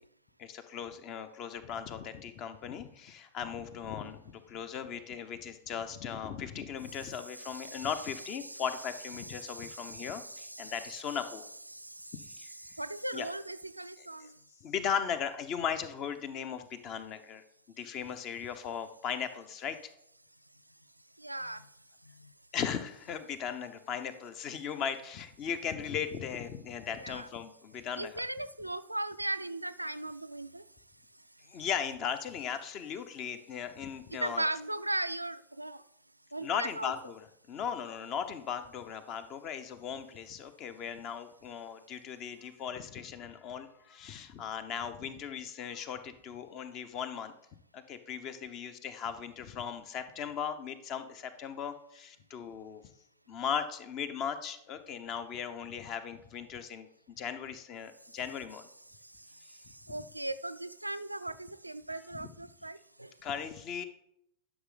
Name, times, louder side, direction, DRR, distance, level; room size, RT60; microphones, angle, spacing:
voice 1, 0.4-11.5 12.4-12.5 13.1-13.3 14.0-14.1 14.6-17.4 17.8-19.9 22.5-28.2 31.5-34.4 36.4-47.3 47.7-52.8 53.3-58.6 61.9-62.3 63.2-63.8, left 7 dB, 35° left, 11 dB, 0.8 m, -38 dB
voice 2, 7.0-7.9 8.4-8.6 9.2-11.2 11.7-14.3 21.2-21.7 22.0-22.3 27.0-27.3 28.0-30.6 34.1-35.8 36.3-36.9 58.9-63.1, right 1 dB, 85° right, 12 dB, 0.3 m, -38 dB
11.0 x 6.2 x 3.8 m, 0.77 s
figure-of-eight pair, 90°, 0 cm